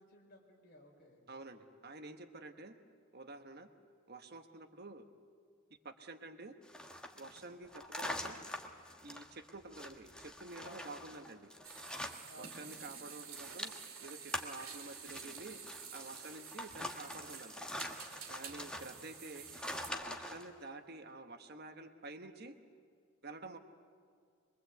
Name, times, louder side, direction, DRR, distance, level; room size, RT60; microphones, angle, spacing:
voice 1, 0.0-1.2 7.3-7.6 10.6-10.9 12.3-12.8 18.5-19.0, equal, 50° left, 0 dB, 4.2 m, -59 dB
voice 2, 1.3-2.8 3.1-3.7 4.1-5.0 5.8-6.6 7.1-8.4 9.0-11.5 12.3-13.7 14.0-15.6 15.9-17.6 18.3-19.4 19.9-22.5 23.2-23.6, right 2 dB, 50° right, 7 dB, 1.1 m, -49 dB
sound 1, 6.6-12.8 13.0-20.5, left 1 dB, 5° left, 1.2 m, -45 dB
sound 2, 11.6-19.9, right 7 dB, 90° right, 2.4 m, -50 dB
23.5 x 23.0 x 8.1 m, 2.1 s
head